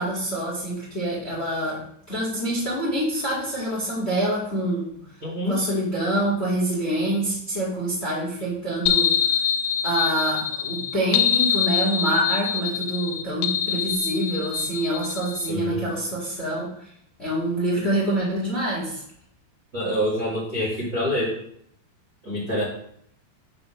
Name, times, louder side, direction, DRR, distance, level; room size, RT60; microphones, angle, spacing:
voice 1, 0.0-4.8 5.4-9.2 9.8-16.7 17.2-19.0, right 1 dB, 30° left, -6 dB, 1.1 m, -26 dB
voice 2, 5.2-5.6 15.5-15.9 19.7-21.3 22.2-22.6, equal, 55° right, -7 dB, 0.7 m, -26 dB
sound 1, 8.9-15.5, left 9 dB, 85° left, 2.2 m, -24 dB
6.7 x 3.7 x 6.2 m, 0.68 s
omnidirectional pair, 4.8 m